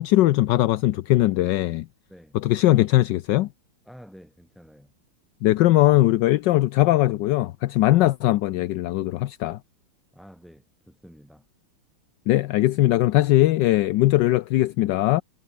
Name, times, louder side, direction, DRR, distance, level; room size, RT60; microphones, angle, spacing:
voice 1, 0.0-1.9 2.4-3.5 5.4-9.6 12.3-15.2, left 16 dB, 75° left, 1.2 m, -20 dB
voice 2, 3.8-4.9 10.1-11.5, equal, ahead, 7.3 m, -49 dB
omnidirectional pair, 2.2 m